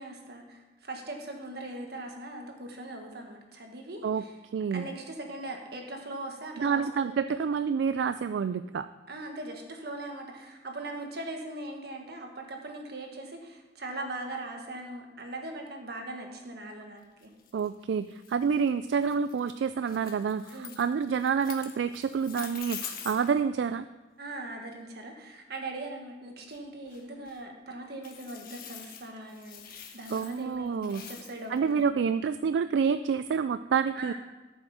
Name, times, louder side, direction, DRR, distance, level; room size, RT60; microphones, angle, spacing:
voice 1, 0.0-4.4 4.7-7.4 9.1-17.3 20.5-20.8 24.2-31.9 33.9-34.1, right 2 dB, 65° right, 2 dB, 1.6 m, -40 dB
voice 2, 4.5-4.9 6.6-8.9 17.5-23.9 30.1-31.0 31.5-34.1, right 6 dB, 80° right, 12 dB, 0.3 m, -28 dB
sound 1, 17.2-23.4 26.5-26.6 26.9-27.4 28.0-31.8, left 8 dB, 55° left, 1.2 m, -45 dB
13.5 x 7.4 x 4.3 m, 1.2 s
head